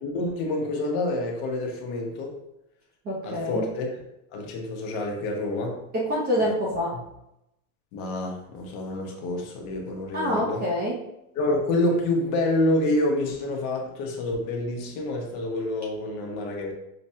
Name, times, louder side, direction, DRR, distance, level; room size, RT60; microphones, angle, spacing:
voice 1, 0.0-2.3 3.2-3.9 4.3-5.8 6.9-7.0 7.9-10.6 11.3-16.7, left 1 dB, 55° left, 1 dB, 0.9 m, -27 dB
voice 2, 3.0-3.6 5.9-6.9 10.1-11.0, equal, 20° right, -5 dB, 0.5 m, -26 dB
5.0 x 2.1 x 2.7 m, 0.85 s
supercardioid pair, 150°, 48 cm